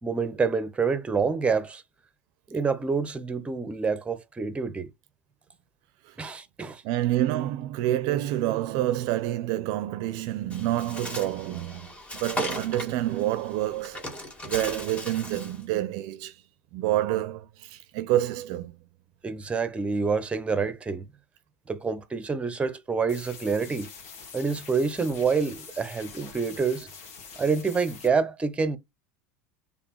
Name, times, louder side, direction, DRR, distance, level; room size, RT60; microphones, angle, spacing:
voice 1, 0.0-1.8 2.5-4.9 6.2-6.8 19.2-21.1 21.7-23.9 24.3-26.9 27.4-28.8, right 5 dB, 15° right, 0.8 m, -27 dB
voice 2, 6.8-11.8 12.1-14.1 14.4-16.3 16.7-18.7, right 14 dB, 60° right, 0.5 m, -28 dB
Bird, 10.5-15.6, left 1 dB, 15° left, 1.9 m, -37 dB
sound 1, 23.1-28.1, left 5 dB, 70° left, 1.9 m, -45 dB
4.0 x 3.5 x 3.1 m
supercardioid pair, 100°, 8 cm